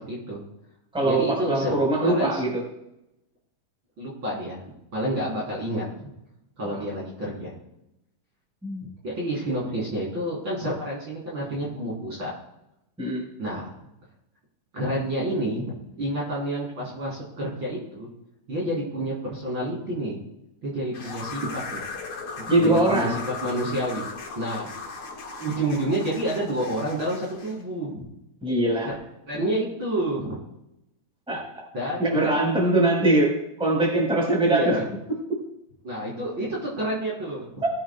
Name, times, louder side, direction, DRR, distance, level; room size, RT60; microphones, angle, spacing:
voice 1, 0.1-0.4 1.0-1.7 2.0-2.4 4.0-4.6 4.9-6.1 6.6-7.5 9.0-12.3 13.4-13.7 14.7-18.1 18.5-20.2 20.6-21.8 22.4-23.1 23.4-24.0 24.4-24.7 25.4-28.0 28.9-29.0 29.3-30.4 31.7-32.3 34.4-34.9 35.8-37.6, right 1 dB, 35° right, -6 dB, 3.9 m, -29 dB
voice 2, 0.9-2.6 6.6-6.8 8.6-8.9 13.0-13.2 22.5-23.2 28.4-29.0 31.3-31.6 32.0-34.9 35.3-35.4 37.6-37.7, right 2 dB, ahead, -3 dB, 3.8 m, -22 dB
sound 1, 20.9-27.6, left 4 dB, 45° left, 2.2 m, -37 dB
21.0 x 8.7 x 2.3 m, 0.85 s
omnidirectional pair, 4.2 m